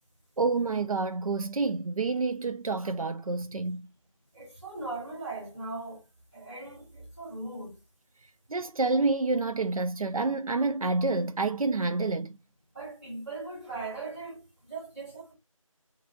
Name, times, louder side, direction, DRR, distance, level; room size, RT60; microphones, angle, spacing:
voice 1, 0.4-3.9 8.5-12.3, right 3 dB, 85° right, 0.4 m, -28 dB
voice 2, 4.3-6.0 6.3-7.8 12.7-15.3, right 3 dB, 15° right, 3.4 m, -39 dB
6.9 x 2.6 x 2.5 m
figure-of-eight pair, 175°, 18 cm